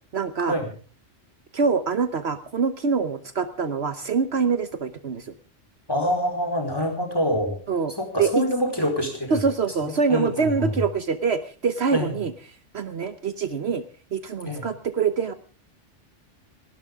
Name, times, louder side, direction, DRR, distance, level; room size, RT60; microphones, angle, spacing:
voice 1, 0.1-0.5 1.5-5.3 7.7-7.9 8.2-8.4 9.3-12.3 12.7-13.8 14.1-15.3, right 5 dB, 60° right, 11 dB, 1.2 m, -25 dB
voice 2, 5.9-7.6 7.9-9.4 9.8-10.8 11.9-12.1 14.4-14.6, equal, 20° left, 3 dB, 4.8 m, -26 dB
29.0 x 12.5 x 3.6 m, 0.37 s
omnidirectional pair, 1.3 m